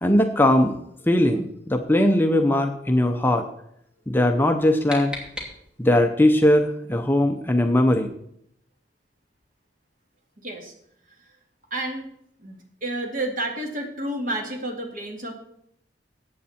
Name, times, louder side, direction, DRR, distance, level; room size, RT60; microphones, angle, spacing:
voice 1, 0.0-0.8 1.1-3.5 4.1-5.1 5.8-8.1, left 1 dB, 10° left, 5 dB, 0.7 m, -20 dB
sound 1, 4.4-6.1, left 2 dB, 5° right, 2.7 m, -38 dB
voice 2, 10.4-10.7 11.1-11.3 11.7-12.1 12.4-15.3, right 1 dB, 45° right, 2 dB, 2.4 m, -30 dB
14.5 x 8.6 x 4.3 m, 0.72 s
head